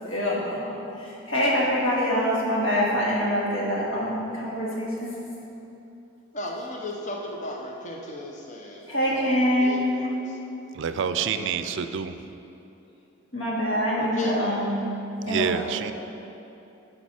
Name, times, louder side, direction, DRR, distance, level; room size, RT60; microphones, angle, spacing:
voice 1, 0.0-5.1 8.9-9.8 13.3-14.9 15.3-15.7, equal, 80° left, -5 dB, 2.1 m, -25 dB
voice 2, 6.3-10.4 11.1-11.9 14.0-14.3, left 1 dB, 40° left, 0 dB, 0.7 m, -36 dB
voice 3, 10.7-12.1 15.3-15.9, right 7 dB, 65° right, 10 dB, 0.4 m, -27 dB
12.0 x 5.2 x 4.3 m, 2.8 s
head